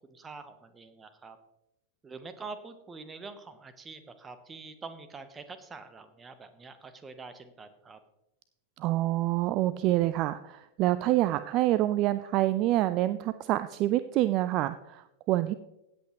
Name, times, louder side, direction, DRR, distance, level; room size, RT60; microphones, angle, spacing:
voice 1, 0.0-1.4 2.0-8.0, right 4 dB, 15° right, 11 dB, 1.1 m, -45 dB
voice 2, 8.8-15.5, right 15 dB, 40° right, 14 dB, 0.4 m, -27 dB
16.0 x 8.0 x 3.1 m, 0.88 s
figure-of-eight pair, 90°, 0 cm